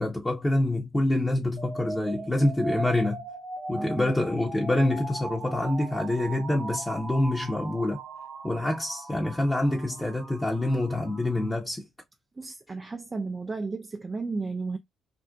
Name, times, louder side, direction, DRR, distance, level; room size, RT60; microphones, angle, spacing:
voice 1, 0.0-3.2 3.7-8.0 8.4-11.9, left 1 dB, 20° left, 0.8 m, -26 dB
sound 1, 1.6-11.6, right 2 dB, 55° right, 0.9 m, -39 dB
voice 2, 3.8-4.1 12.4-14.8, right 3 dB, 30° right, 0.3 m, -33 dB
2.5 x 2.1 x 2.4 m
hypercardioid pair, 50°, 0 cm